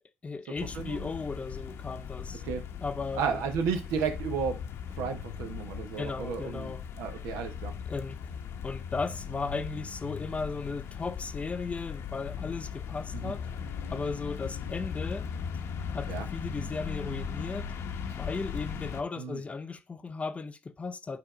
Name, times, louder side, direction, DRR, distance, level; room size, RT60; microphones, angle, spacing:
voice 1, 0.2-2.4 2.8-3.4 6.0-6.8 7.9-8.2 8.6-13.5 13.9-15.3 15.9-17.7 18.2-21.2, left 4 dB, 25° left, 0.6 m, -36 dB
sound 1, 0.6-19.0, left 7 dB, 65° left, 0.9 m, -38 dB
voice 2, 0.7-1.1 2.4-2.6 3.1-4.6 5.0-6.7 7.0-7.7 13.1-13.3 16.1-16.3 19.2-19.4, right 6 dB, 85° right, 1.2 m, -33 dB
8.8 x 2.9 x 5.0 m
cardioid pair, 90°, 5 cm